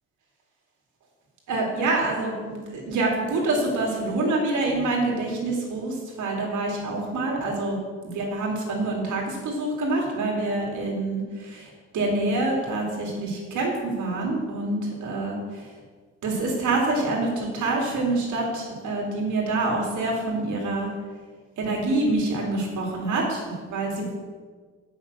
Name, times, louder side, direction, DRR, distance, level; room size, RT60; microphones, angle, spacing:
voice 1, 1.5-7.8 8.0-15.6 16.2-20.9 21.6-24.1, right 2 dB, 75° right, -1 dB, 2.6 m, -26 dB
7.2 x 5.8 x 6.6 m, 1.5 s
cardioid pair, 90°, 30 cm